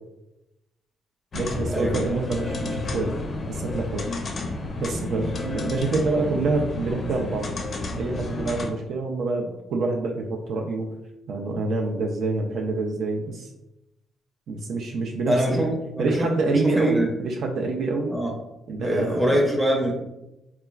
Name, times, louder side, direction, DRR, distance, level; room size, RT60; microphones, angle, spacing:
sound 1, 1.3-8.7, left 2 dB, 45° left, 0.4 m, -31 dB
voice 1, 1.3-3.2 3.4-4.0 4.8-7.5 7.9-10.9 11.3-13.5 14.5-15.7 16.0-18.2 18.7-19.4, right 3 dB, 65° right, 1 dB, 0.3 m, -26 dB
voice 2, 15.3-15.7 15.9-17.1 18.1-18.3 18.8-19.9, equal, 5° right, -2 dB, 0.5 m, -24 dB
2.9 x 2.3 x 2.3 m, 0.93 s
cardioid pair, 90°, 0 cm